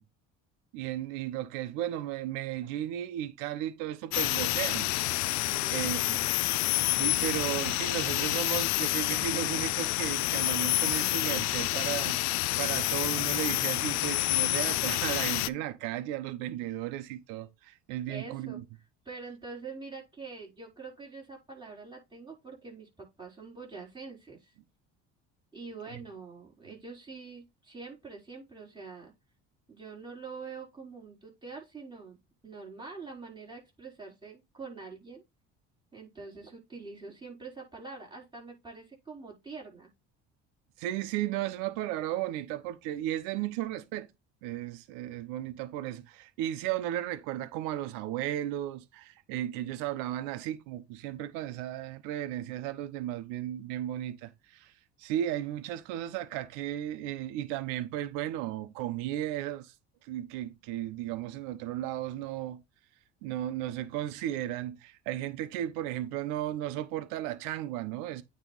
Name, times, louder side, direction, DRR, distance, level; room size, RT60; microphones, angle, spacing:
voice 1, 0.7-4.9 5.7-6.2 6.9-12.2 12.6-18.6 25.9-26.0 40.8-44.1 44.4-54.7 55.0-59.7 60.0-62.6 63.2-68.2, right 13 dB, 85° right, 1.0 m, -35 dB
sound 1, 4.1-15.5, left 17 dB, 60° left, 0.5 m, -28 dB
voice 2, 5.4-6.2 18.1-18.6 19.0-24.5 25.5-29.1 29.7-32.2 32.4-35.2 35.9-39.9, right 4 dB, 15° right, 4.4 m, -45 dB
9.1 x 3.3 x 4.0 m
supercardioid pair, 105°, 31 cm